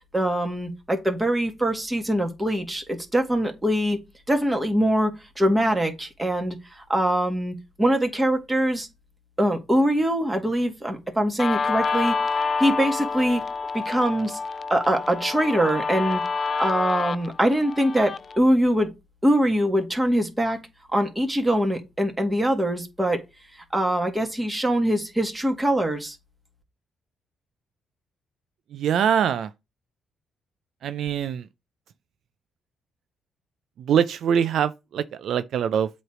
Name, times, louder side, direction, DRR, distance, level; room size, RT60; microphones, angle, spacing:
voice 1, 0.1-4.0 4.3-8.9 9.4-12.2 12.6-13.4 13.7-14.4 14.7-16.2 16.6-18.9 19.2-20.6 20.9-23.2 23.7-26.2, right 1 dB, 10° right, 1.8 m, -23 dB
Guitar, 11.4-18.4, left 4 dB, 40° left, 0.3 m, -28 dB
voice 2, 28.7-29.5 30.8-31.5 33.8-35.9, right 8 dB, 70° right, 0.4 m, -23 dB
7.8 x 3.2 x 5.9 m
cardioid pair, 90°, 0 cm